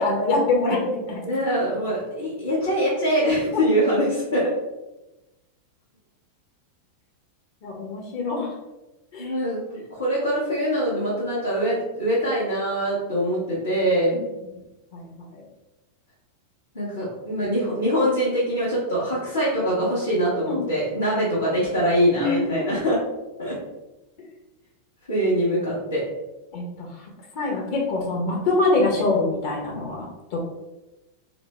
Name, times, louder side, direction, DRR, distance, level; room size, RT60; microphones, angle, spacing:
voice 1, 0.0-1.2 7.6-8.5 9.1-9.4 14.9-15.4 20.3-20.6 22.1-22.7 26.5-30.5, left 2 dB, 45° left, -1 dB, 0.8 m, -25 dB
voice 2, 1.2-4.5 9.2-14.2 16.7-23.0 23.4-23.6 25.1-26.0, equal, 70° left, -8 dB, 1.0 m, -23 dB
3.1 x 2.1 x 3.1 m, 1.0 s
figure-of-eight pair, 90°, 0 cm